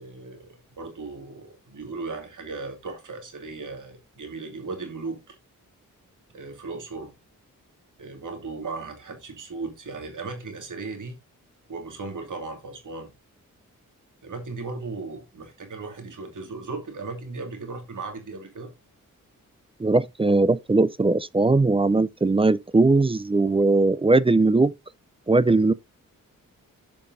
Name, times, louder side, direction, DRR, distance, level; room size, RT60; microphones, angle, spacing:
voice 1, 0.0-5.4 6.3-7.1 8.0-11.1 11.7-13.1 14.2-18.7, right 3 dB, 65° right, 2.7 m, -36 dB
voice 2, 19.8-24.7 25.3-25.7, right 3 dB, 15° right, 0.4 m, -20 dB
14.5 x 5.3 x 2.6 m
cardioid pair, 65°, 34 cm